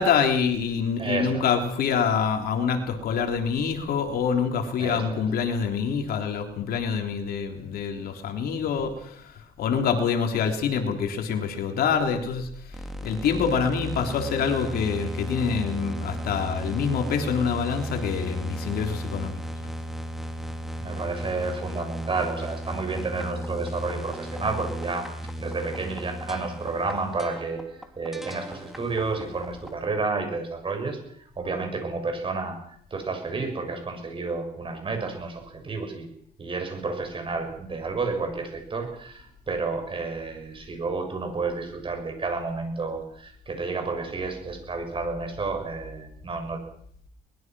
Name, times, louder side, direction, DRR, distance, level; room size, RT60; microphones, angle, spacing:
voice 1, 0.0-9.2 9.6-12.5 13.0-19.4, left 6 dB, 65° left, 4 dB, 3.5 m, -26 dB
voice 2, 1.0-1.5 4.8-5.3 20.8-25.1 25.4-27.6 28.0-31.0 31.4-32.6 32.9-36.1 36.4-46.6, right 4 dB, 30° right, 5 dB, 7.2 m, -31 dB
sound 1, 12.7-29.8, equal, ahead, 3.1 m, -35 dB
22.5 x 21.0 x 6.2 m, 0.65 s
cardioid pair, 110°, 17 cm